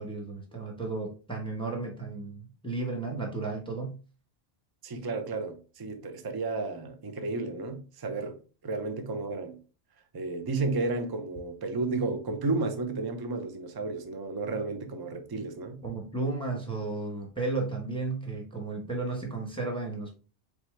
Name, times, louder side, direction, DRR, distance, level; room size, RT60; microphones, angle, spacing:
voice 1, 0.0-4.0 15.8-20.1, right 3 dB, 5° left, 0.9 m, -33 dB
voice 2, 4.8-8.4 8.6-9.6 10.1-15.8, right 3 dB, 30° right, 0.5 m, -32 dB
4.2 x 3.6 x 3.1 m
omnidirectional pair, 1.1 m